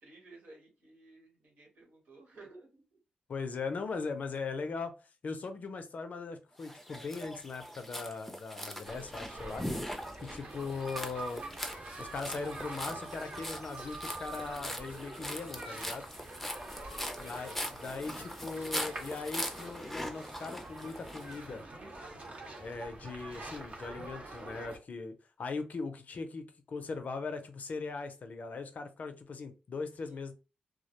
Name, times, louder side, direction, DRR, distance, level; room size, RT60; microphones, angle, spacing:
voice 1, 0.0-3.0 3.7-3.8 16.9-17.4 30.0-30.2, right 3 dB, 80° right, 0 dB, 1.2 m, -56 dB
voice 2, 3.3-4.9 5.2-9.7 10.2-11.4 12.0-16.0 17.2-21.6 22.6-30.3, left 4 dB, 60° left, 8 dB, 0.5 m, -39 dB
sound 1, 6.6-21.4, equal, 5° left, 0.5 m, -41 dB
sound 2, 8.8-24.8, right 2 dB, 50° right, 0.8 m, -45 dB
2.2 x 2.1 x 2.9 m, 0.29 s
cardioid pair, 65°, 3 cm